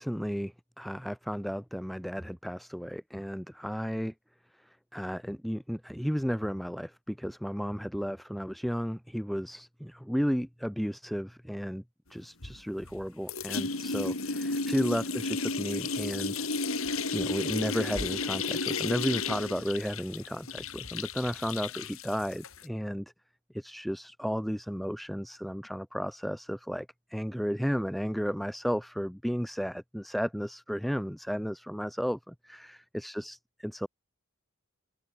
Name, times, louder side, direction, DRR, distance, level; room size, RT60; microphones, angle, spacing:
voice 1, 0.0-4.1 4.9-11.8 12.1-16.5 17.1-23.1 23.5-33.9, equal, ahead, 6.2 m, -33 dB
sound 1, 12.4-13.0 13.3-22.7, left 4 dB, 75° left, 4.6 m, -33 dB
head